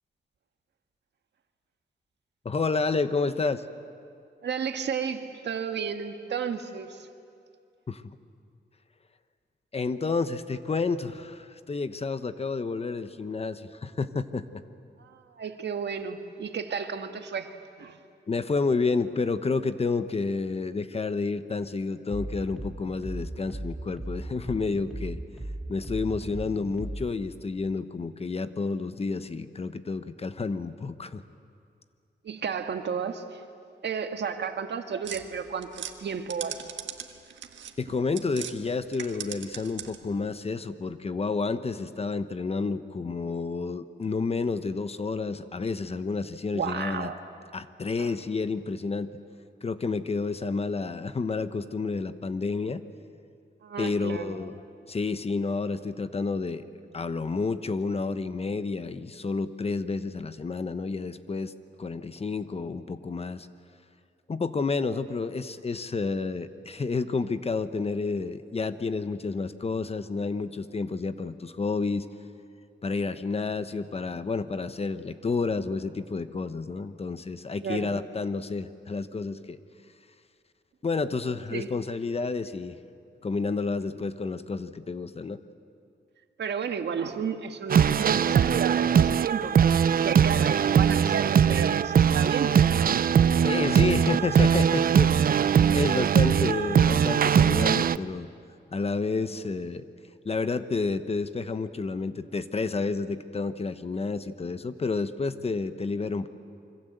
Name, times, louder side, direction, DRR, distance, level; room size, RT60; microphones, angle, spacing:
voice 1, 2.4-3.6 7.9-8.2 9.7-14.6 18.3-25.2 25.7-31.2 37.8-47.1 47.5-49.1 49.6-52.8 53.8-54.6 54.9-56.6 56.9-61.5 61.8-63.5 64.3-72.1 72.8-79.6 80.8-82.8 83.2-85.4 93.4-95.1 95.7-98.3 98.7-99.8 100.2-106.3, left 4 dB, 35° left, 11 dB, 1.0 m, -30 dB
voice 2, 4.4-7.1 15.0-17.5 17.8-18.0 32.2-33.4 33.8-36.7 46.5-47.2 48.0-48.1 53.6-54.4 77.6-77.9 81.5-81.7 86.4-93.1 93.6-93.8, right 6 dB, 70° right, 6 dB, 1.7 m, -32 dB
sound 1, 22.1-27.1, right 1 dB, ahead, 2.2 m, -37 dB
sound 2, 35.0-38.6 38.9-40.1, right 8 dB, 90° right, 1.6 m, -40 dB
sound 3, 87.7-98.0, right 8 dB, 50° right, 0.5 m, -21 dB
26.0 x 24.5 x 7.9 m, 2.4 s
cardioid pair, 105°, 19 cm